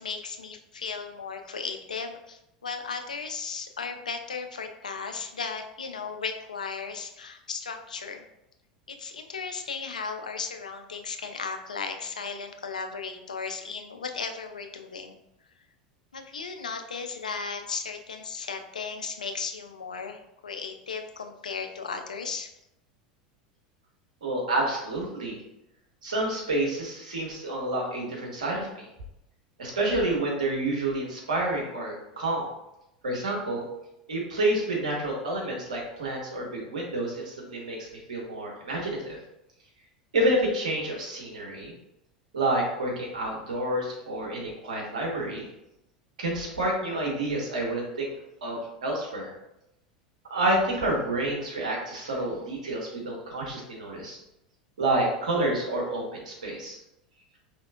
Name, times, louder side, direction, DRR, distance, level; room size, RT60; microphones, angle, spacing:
voice 1, 0.0-8.3 8.9-15.2 16.1-22.5, left 5 dB, 80° left, 6 dB, 0.4 m, -36 dB
voice 2, 24.2-25.4 26.0-28.9 29.6-32.5 33.0-33.6 34.1-39.2 40.1-41.8 42.3-45.5 46.2-48.1 48.4-49.3 50.3-54.2 54.8-56.8, right 1 dB, 75° right, -2 dB, 1.2 m, -29 dB
5.0 x 3.3 x 2.4 m, 0.87 s
figure-of-eight pair, 80°, 4 cm